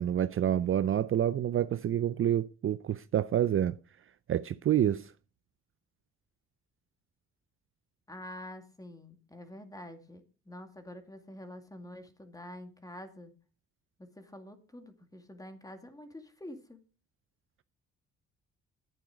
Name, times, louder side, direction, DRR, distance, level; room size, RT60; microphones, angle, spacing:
voice 1, 0.0-3.8 4.3-5.1, right 10 dB, 45° right, 0.5 m, -28 dB
voice 2, 8.1-13.3 14.0-16.8, left 1 dB, 10° left, 2.3 m, -47 dB
11.0 x 8.8 x 5.0 m
cardioid pair, 90°, 30 cm